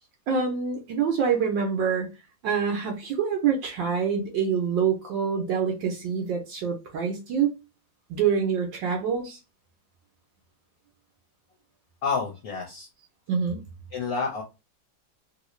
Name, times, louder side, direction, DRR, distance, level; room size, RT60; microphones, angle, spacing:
voice 1, 0.3-2.1 2.4-7.5 8.1-9.4 13.3-13.6, right 6 dB, 70° right, 1.3 m, -26 dB
voice 2, 12.0-12.9 13.9-14.4, left 5 dB, 60° left, 1.1 m, -29 dB
3.1 x 2.7 x 3.0 m
omnidirectional pair, 2.2 m